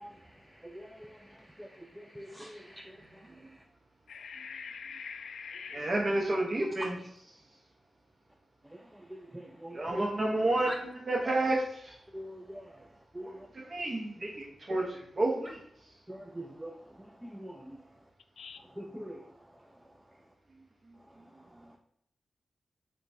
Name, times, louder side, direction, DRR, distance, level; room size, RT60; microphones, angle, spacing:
voice 1, 2.2-2.7 9.1-9.8 10.7-10.8 12.1-12.6 13.2-13.4 16.1-16.7 17.3-17.6 18.8-19.2, right 1 dB, 10° right, 3 dB, 0.4 m, -43 dB
voice 2, 4.1-5.9 18.4-18.6, left 6 dB, 80° left, 9 dB, 0.3 m, -43 dB
voice 3, 5.7-7.0 9.7-11.9 13.5-15.6, right 2 dB, 45° right, -2 dB, 0.8 m, -30 dB
6.5 x 2.2 x 2.6 m, 0.70 s
cardioid pair, 45°, 0 cm